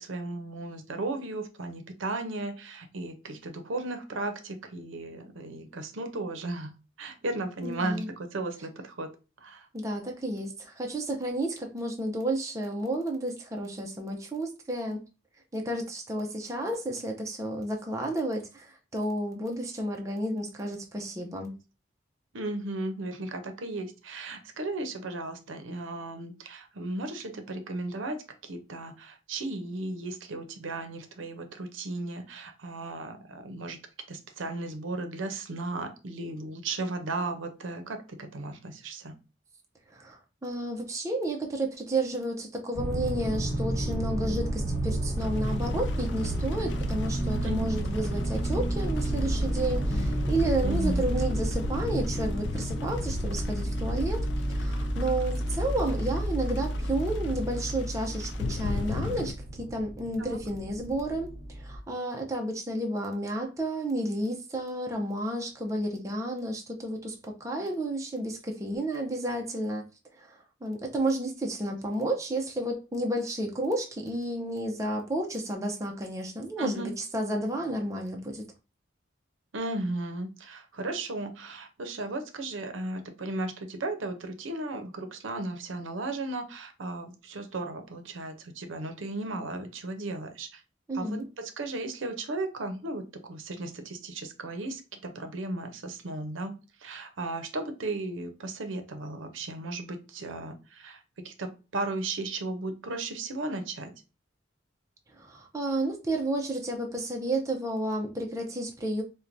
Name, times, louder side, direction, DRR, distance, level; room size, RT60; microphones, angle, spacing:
voice 1, 0.0-9.1 9.4-9.7 22.3-33.8 34.1-39.1 47.4-47.7 50.6-51.0 60.2-60.4 76.6-76.9 79.5-90.6 90.9-103.9, right 2 dB, 85° right, 0.6 m, -35 dB
voice 2, 7.6-8.1 9.7-15.0 15.5-21.5 39.9-69.9 70.2-78.5 90.9-91.3 105.1-109.0, right 1 dB, 15° right, 0.5 m, -31 dB
sound 1, 42.7-61.8, right 1 dB, 45° left, 1.2 m, -31 dB
sound 2, 45.2-59.3, left 4 dB, 65° left, 0.3 m, -39 dB
4.4 x 2.2 x 2.5 m
head